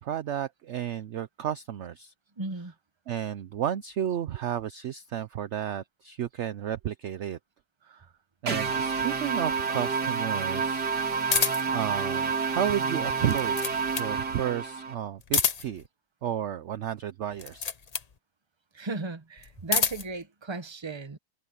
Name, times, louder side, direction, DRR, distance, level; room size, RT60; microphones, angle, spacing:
voice 1, 0.0-2.1 3.1-7.4 7.8-8.1 8.4-10.9 11.7-15.8 16.2-17.7, right 10 dB, 60° right, 0.8 m, -32 dB
voice 2, 2.4-2.7 18.7-21.2, right 3 dB, 20° right, 1.0 m, -35 dB
sound 1, 8.5-14.9, right 5 dB, 80° right, 2.9 m, -29 dB
sound 2, 11.3-11.8 13.1-14.2 15.2-15.9 17.3-18.1 19.4-20.1, left 5 dB, 40° left, 0.6 m, -28 dB
omnidirectional pair, 1.7 m